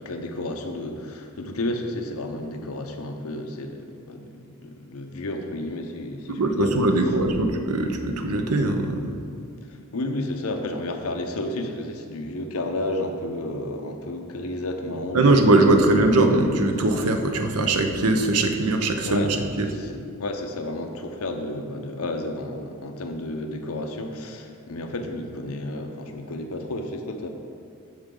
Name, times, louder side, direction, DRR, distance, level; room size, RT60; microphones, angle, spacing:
voice 1, 0.0-6.7 9.7-15.7 19.0-19.4 19.7-19.9 20.2-27.3, left 1 dB, 75° left, 4 dB, 0.8 m, -32 dB
voice 2, 6.3-9.1 15.1-19.3 19.6-19.7, right 2 dB, 85° right, 5 dB, 0.8 m, -20 dB
13.5 x 5.0 x 3.8 m, 2.4 s
head